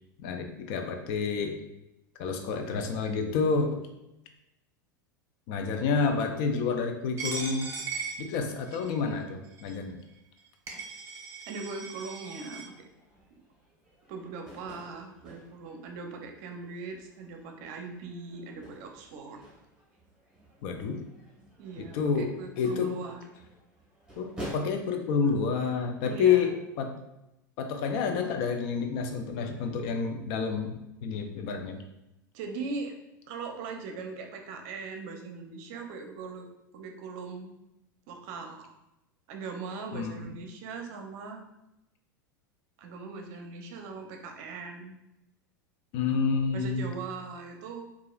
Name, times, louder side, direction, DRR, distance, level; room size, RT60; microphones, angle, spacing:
voice 1, 0.2-1.6 2.2-3.8 5.5-7.7 8.2-10.0 20.6-21.0 21.8-22.9 24.2-27.0 27.6-30.8 31.0-31.8 39.9-40.3 45.9-46.9, left 5 dB, 50° left, 5 dB, 0.5 m, -29 dB
Coin (dropping), 7.2-8.9 9.6-9.7 10.4-10.5 10.7-12.6, right 4 dB, 25° right, 1.0 m, -38 dB
voice 2, 11.5-12.7 13.3-13.4 14.1-19.4 21.6-23.2 26.0-26.5 32.3-33.0 33.3-36.5 36.7-37.6 38.1-38.7 39.3-41.4 42.8-45.0 46.5-47.9, right 4 dB, 55° right, 4 dB, 0.6 m, -40 dB
sound 1, 12.6-24.6, right 1 dB, 5° right, 1.5 m, -49 dB
4.7 x 2.4 x 2.4 m, 0.90 s
figure-of-eight pair, 85°, 11 cm